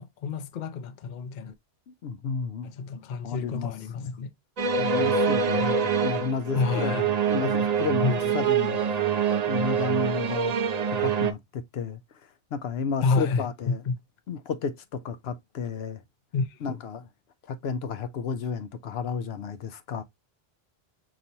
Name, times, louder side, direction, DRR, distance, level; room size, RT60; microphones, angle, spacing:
voice 1, 0.0-1.5 2.6-4.3 6.5-7.1 7.3-7.5 8.0-8.3 13.0-14.0 16.3-16.8, left 4 dB, 55° left, 0.7 m, -29 dB
voice 2, 1.9-2.7 3.2-3.7 4.8-6.9 7.3-9.0 9.5-10.6 10.9-12.0 12.5-13.8 14.3-16.0 16.6-17.1 17.5-20.0, left 5 dB, 85° left, 0.9 m, -32 dB
sound 1, 4.6-11.3, right 6 dB, 50° right, 0.5 m, -25 dB
5.3 x 3.0 x 2.8 m
omnidirectional pair, 1.0 m